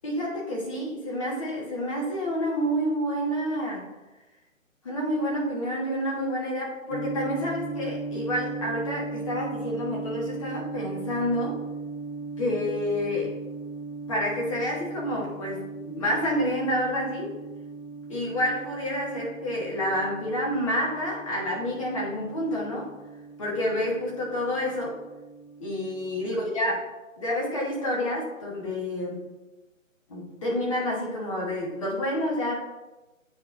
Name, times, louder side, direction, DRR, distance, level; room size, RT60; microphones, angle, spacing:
voice 1, 0.0-3.9 4.8-11.6 12.4-13.4 14.1-17.3 18.1-22.9 23.4-25.0 25.6-26.8 27.2-29.4 30.1-32.5, equal, 25° left, -4 dB, 1.2 m, -29 dB
sound 1, 6.9-26.5, right 3 dB, 50° left, 0.7 m, -38 dB
8.3 x 4.8 x 2.6 m, 1.1 s
figure-of-eight pair, 150°, 41 cm